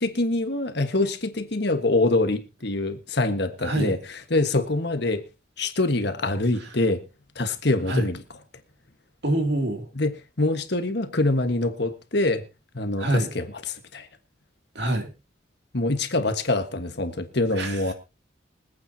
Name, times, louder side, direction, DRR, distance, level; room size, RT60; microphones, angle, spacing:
voice 1, 0.0-4.0 4.3-5.2 5.6-7.0 7.3-8.2 10.0-10.1 10.4-12.4 12.7-14.1 15.7-17.9, left 2 dB, 55° left, 8 dB, 1.4 m, -25 dB
voice 2, 3.6-4.0 6.6-6.7 7.9-8.1 9.2-9.9 13.0-13.3 14.7-15.1 17.5-17.9, right 1 dB, 55° right, 4 dB, 2.7 m, -26 dB
25.0 x 9.0 x 2.8 m, 0.29 s
head